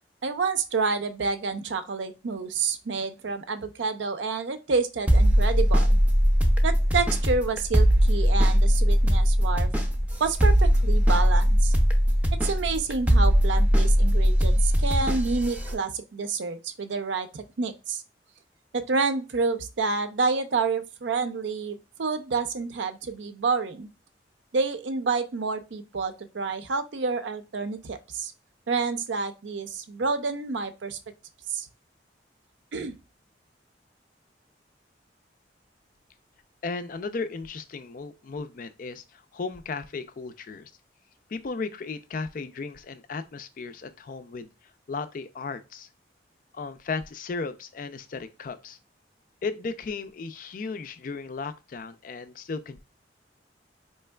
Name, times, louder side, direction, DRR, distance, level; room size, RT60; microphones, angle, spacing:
voice 1, 0.2-6.0 6.6-9.7 10.2-11.7 12.4-18.0 18.7-23.9 24.5-28.3 28.7-31.0 31.5-31.7 32.7-32.9, right 4 dB, 80° right, 0.5 m, -28 dB
sound 1, 5.1-15.7, equal, 10° right, 0.5 m, -20 dB
voice 2, 36.6-40.7 41.3-44.5 44.9-45.9 46.5-48.8 49.4-52.8, left 4 dB, 45° left, 0.4 m, -35 dB
4.4 x 3.2 x 2.2 m
head